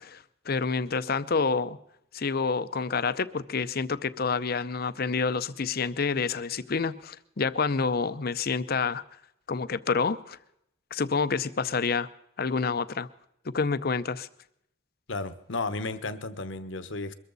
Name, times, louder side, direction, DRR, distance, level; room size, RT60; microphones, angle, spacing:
voice 1, 0.0-1.8 2.1-9.0 9.5-10.4 10.9-12.1 12.4-13.1 13.4-14.3, left 4 dB, 50° left, 14 dB, 0.6 m, -28 dB
voice 2, 15.1-17.1, left 3 dB, 65° left, 12 dB, 1.1 m, -33 dB
23.0 x 14.0 x 4.0 m, 0.78 s
head